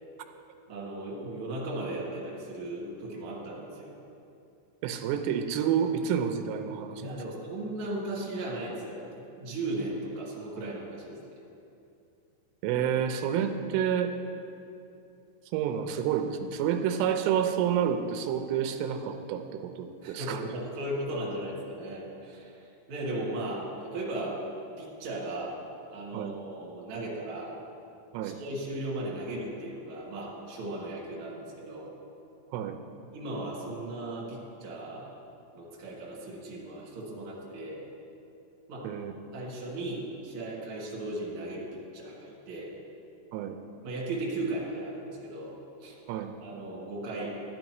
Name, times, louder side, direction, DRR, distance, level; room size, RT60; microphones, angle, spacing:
voice 1, 0.7-3.9 7.0-9.1 9.4-11.2 20.0-24.4 24.8-25.6 25.9-27.5 28.2-31.9 33.1-35.1 35.5-37.8 38.7-38.9 39.3-41.7 41.9-42.7 43.8-45.5 45.8-46.0 46.4-47.4, right 1 dB, 45° right, -5 dB, 2.0 m, -36 dB
voice 2, 4.8-7.1 12.6-14.2 15.5-20.4 26.1-26.3 28.1-28.4 32.5-32.8 38.8-39.1 43.3-43.6 46.1-46.3, right 8 dB, 85° right, 6 dB, 3.1 m, -29 dB
12.5 x 11.5 x 3.0 m, 2.6 s
omnidirectional pair, 5.7 m